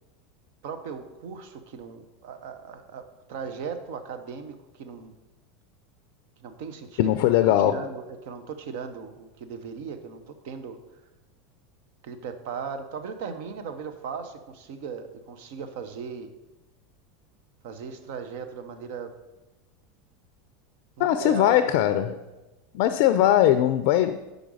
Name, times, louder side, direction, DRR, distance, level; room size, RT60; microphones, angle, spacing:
voice 1, 0.6-5.1 6.4-7.4 7.6-10.8 12.0-16.3 17.6-19.1 21.0-22.2, right 6 dB, 70° right, 0.8 m, -37 dB
voice 2, 7.0-7.8 21.0-22.2 22.7-24.2, left 12 dB, 65° left, 0.4 m, -20 dB
5.1 x 5.0 x 6.2 m
hypercardioid pair, 100°, 0 cm